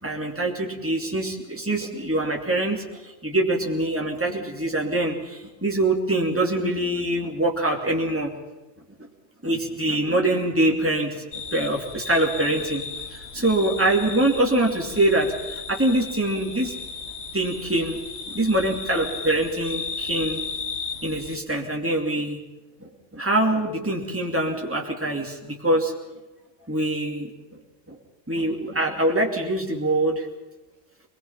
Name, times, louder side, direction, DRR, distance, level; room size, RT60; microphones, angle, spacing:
voice 1, 0.0-8.3 9.4-11.3 11.5-12.8 13.3-16.7 17.3-18.0 18.3-20.4 21.0-22.4 22.8-25.9 26.7-27.3 27.9-28.0 28.3-30.3, right 1 dB, 10° right, -1 dB, 2.8 m, -24 dB
sound 1, 11.3-21.4, left 5 dB, 55° left, 1.7 m, -35 dB
24.0 x 21.0 x 5.8 m, 1.1 s
omnidirectional pair, 1.3 m